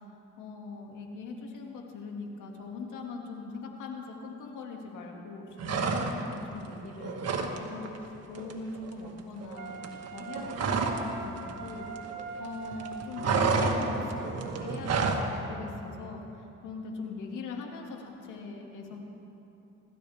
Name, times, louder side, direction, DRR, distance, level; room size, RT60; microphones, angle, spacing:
voice 1, 0.4-11.9 12.4-19.1, left 4 dB, 85° left, 0 dB, 2.4 m, -41 dB
sound 1, 5.6-6.4 6.7-7.6 7.8-8.1 8.3-11.1 11.4-12.5 12.7-15.3, right 5 dB, 55° right, 1.6 m, -29 dB
Wind instrument woodwind instrument, 9.5-14.8, right 6 dB, 80° right, 1.5 m, -42 dB
26.5 x 13.5 x 3.6 m, 2.9 s
cardioid pair, 90°, 30 cm